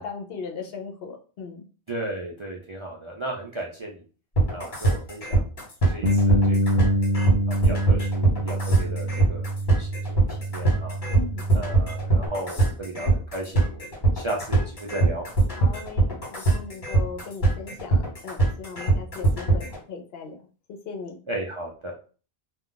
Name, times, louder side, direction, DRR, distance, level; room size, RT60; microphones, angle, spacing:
voice 1, 0.0-1.6 11.1-11.5 15.5-21.2, left 5 dB, 70° left, 3 dB, 0.8 m, -38 dB
voice 2, 1.9-4.0 4.5-5.4 5.9-6.9 7.5-11.0 11.5-15.3 21.3-22.0, right 1 dB, 45° right, -2 dB, 0.4 m, -35 dB
sound 1, 4.4-19.8, right 3 dB, 50° left, 1.3 m, -22 dB
Bass guitar, 6.0-12.3, equal, 65° right, 0.7 m, -26 dB
2.3 x 2.3 x 3.7 m, 0.38 s
omnidirectional pair, 1.1 m